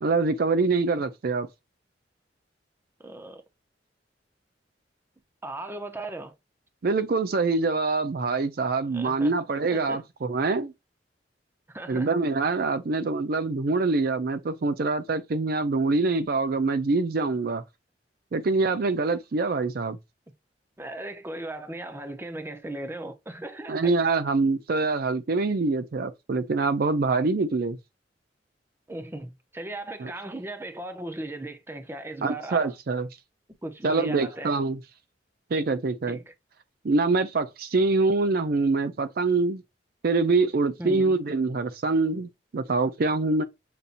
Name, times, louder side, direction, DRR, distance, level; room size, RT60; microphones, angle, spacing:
voice 1, 0.0-1.5 6.8-10.7 11.9-17.6 18.3-20.0 23.7-27.8 30.0-30.1 32.2-33.1 33.8-34.8 35.5-36.2 36.8-39.6 40.0-43.4, right 3 dB, 55° right, 0.4 m, -25 dB
voice 2, 3.0-3.4 5.4-6.3 8.9-9.3 9.7-10.0 11.7-12.1 20.8-23.9 28.9-32.7 33.6-34.5 36.1-36.3 40.8-41.1, right 2 dB, 15° right, 0.6 m, -37 dB
6.8 x 2.7 x 2.5 m
head